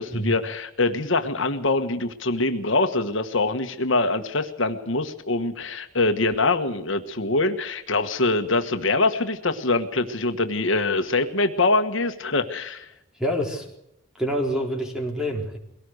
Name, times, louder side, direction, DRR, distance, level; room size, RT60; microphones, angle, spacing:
voice 1, 0.0-12.9, left 2 dB, 65° left, 7 dB, 1.4 m, -24 dB
voice 2, 13.1-13.7 14.2-15.6, equal, 5° right, 1 dB, 4.3 m, -26 dB
22.5 x 18.0 x 6.5 m, 0.82 s
head